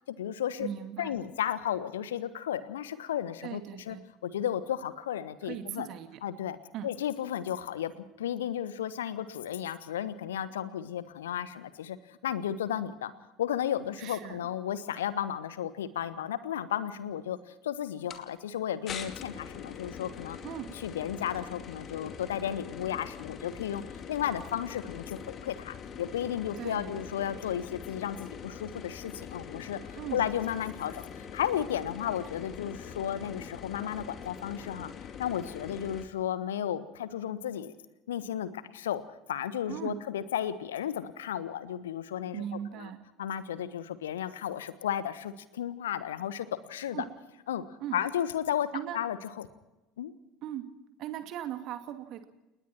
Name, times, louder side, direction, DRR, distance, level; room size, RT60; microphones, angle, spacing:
voice 1, 0.1-0.7 1.0-4.0 4.2-5.9 6.2-6.6 6.8-7.9 8.2-12.0 12.2-13.1 13.4-17.4 17.6-20.4 20.7-23.8 24.1-29.8 30.1-34.9 35.2-37.7 38.1-39.0 39.3-42.4 42.8-42.9 43.2-47.0 47.5-47.6 47.9-48.7 48.9-49.5 50.0-50.1, left 10 dB, 70° left, 15 dB, 1.3 m, -33 dB
voice 2, 0.6-1.2 3.4-4.0 5.4-6.2 6.7-6.9 14.0-14.4 20.4-20.8 26.6-27.0 30.0-30.3 39.7-40.0 42.3-43.0 46.9-47.1 47.8-48.0 48.7-49.0 50.4-50.6 51.0-52.2, right 11 dB, 45° right, 7 dB, 2.5 m, -38 dB
sound 1, 18.1-18.2 18.9-36.1, left 7 dB, 35° left, 2.5 m, -43 dB
29.5 x 19.5 x 4.5 m, 0.98 s
figure-of-eight pair, 65°, 0 cm